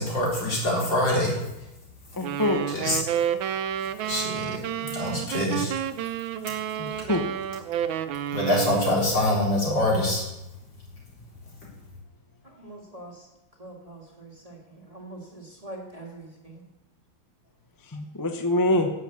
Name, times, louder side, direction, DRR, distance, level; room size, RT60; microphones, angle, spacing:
voice 1, 0.0-1.4 2.7-3.0 4.0-4.6 4.9-5.7 8.3-10.2, left 1 dB, 65° left, -5 dB, 4.8 m, -24 dB
voice 2, 2.2-2.6 4.8-4.9 6.8-7.2 9.7-9.8 17.8-18.9, left 1 dB, 20° left, 5 dB, 0.6 m, -25 dB
sound 1, 2.2-9.0, right 10 dB, 80° right, 1.5 m, -30 dB
voice 3, 12.4-13.3 13.6-16.7, right 2 dB, 20° right, -2 dB, 2.0 m, -43 dB
9.8 x 8.0 x 8.3 m, 0.93 s
omnidirectional pair, 2.2 m